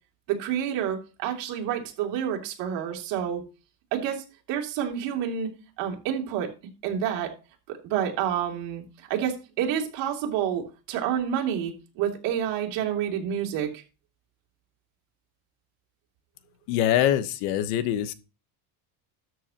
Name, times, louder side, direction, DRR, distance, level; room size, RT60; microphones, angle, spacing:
voice 1, 0.3-3.4 3.9-5.5 5.8-6.5 6.8-7.4 7.7-8.8 9.1-13.8, right 9 dB, 65° right, 3.1 m, -29 dB
voice 2, 16.7-18.1, left 11 dB, 90° left, 1.2 m, -24 dB
13.0 x 7.9 x 2.9 m
cardioid pair, 155°, 46 cm